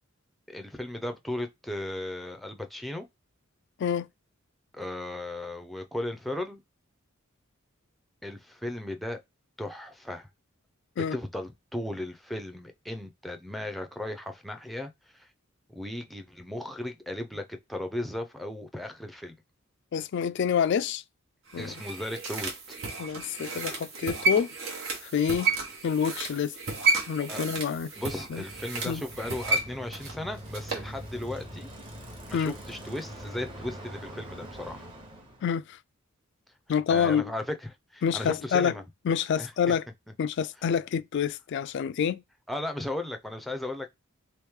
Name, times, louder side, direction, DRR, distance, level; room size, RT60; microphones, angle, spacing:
voice 1, 0.5-3.1 4.7-6.6 8.2-9.2 9.6-10.3 11.1-15.3 15.7-19.4 21.6-22.5 27.3-27.6 28.0-31.7 32.3-34.9 36.9-38.8 39.4-39.5 42.5-43.9, left 1 dB, ahead, 0.5 m, -36 dB
voice 2, 19.9-21.0 21.5-21.7 23.0-24.5 25.0-25.5 25.8-26.5 27.1-27.9 28.3-28.4 28.9-29.0 32.3-32.5 35.4-35.8 36.7-37.3 38.0-38.7 39.1-39.8 40.2-42.2, left 7 dB, 60° left, 0.3 m, -27 dB
sound 1, 21.5-30.9 31.2-31.3, right 3 dB, 65° right, 1.1 m, -32 dB
Bicycle, 27.9-35.5, equal, 25° right, 1.0 m, -43 dB
3.1 x 3.0 x 3.6 m
head